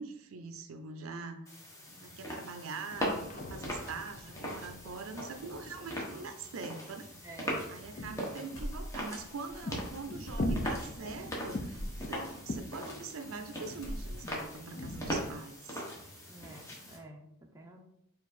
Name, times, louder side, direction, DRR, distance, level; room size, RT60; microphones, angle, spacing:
voice 1, 0.0-1.4 2.0-7.1 7.7-15.8, right 4 dB, 85° right, 8 dB, 0.5 m, -43 dB
sound 1, 1.5-17.0, equal, 15° left, 0.9 m, -41 dB
sound 2, 2.9-6.4 6.9-8.8 9.2-15.3, left 1 dB, 40° left, 0.4 m, -42 dB
voice 2, 7.2-7.6 16.3-17.8, right 2 dB, 15° right, 1 dB, 0.6 m, -50 dB
sound 3, 8.5-9.2 9.5-9.6 10.3-10.9 11.7-12.1 12.9-13.4 13.7-14.5, equal, 80° left, 1.3 m, -40 dB
4.6 x 2.5 x 4.1 m, 0.77 s
head